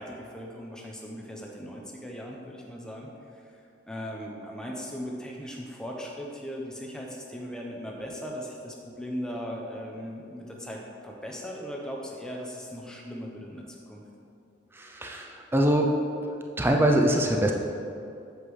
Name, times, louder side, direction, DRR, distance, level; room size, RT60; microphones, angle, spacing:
voice 1, 0.0-3.5 3.9-14.0, equal, 5° left, -2 dB, 0.8 m, -38 dB
voice 2, 14.7-15.9 16.3-17.5, right 1 dB, 10° right, 2 dB, 0.4 m, -24 dB
8.2 x 7.4 x 3.2 m, 2.6 s
head